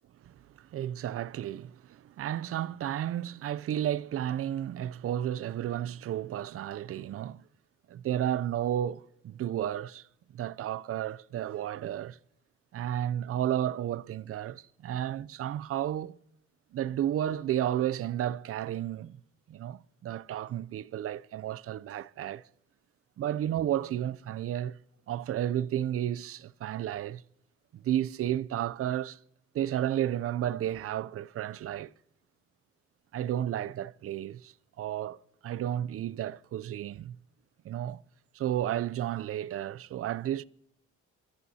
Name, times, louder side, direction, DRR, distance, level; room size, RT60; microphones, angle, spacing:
voice 1, 0.2-7.4 7.9-10.1 10.3-12.2 12.7-16.2 16.7-19.2 19.5-22.5 23.2-24.8 25.1-27.2 27.7-29.2 29.5-31.9 33.1-35.2 35.4-37.2 37.6-38.0 38.3-40.4, right 11 dB, 50° right, 0.5 m, -32 dB
26.5 x 13.5 x 2.8 m
cardioid pair, 90°, 30 cm